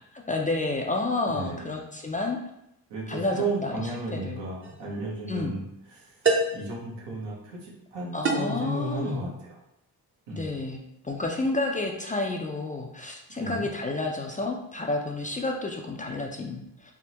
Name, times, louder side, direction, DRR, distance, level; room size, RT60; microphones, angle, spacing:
voice 1, 0.3-2.4 3.1-3.8 4.1-4.4 5.3-5.5 8.1-9.2 10.3-16.9, left 2 dB, 20° left, 1 dB, 0.3 m, -30 dB
voice 2, 1.3-1.7 2.9-5.6 5.9-9.6 10.3-10.5 13.4-13.6, right 2 dB, 80° right, -4 dB, 1.1 m, -34 dB
sound 1, 4.6-4.8 6.2-6.7 8.2-8.6, right 3 dB, 30° right, 0.6 m, -25 dB
3.4 x 2.1 x 2.8 m, 0.80 s
cardioid pair, 65°, 42 cm